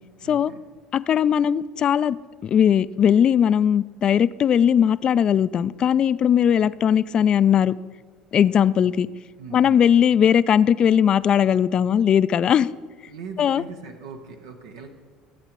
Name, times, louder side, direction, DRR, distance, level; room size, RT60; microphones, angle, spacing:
voice 1, 0.2-0.6 9.4-9.8 13.1-14.9, right 5 dB, 85° right, 4 dB, 0.8 m, -40 dB
voice 2, 0.9-2.2 2.4-7.7 8.3-9.1 9.5-12.7 13.4-13.6, left 8 dB, 45° left, 17 dB, 0.3 m, -19 dB
15.5 x 8.0 x 3.0 m, 1.5 s
hypercardioid pair, 80°, 2 cm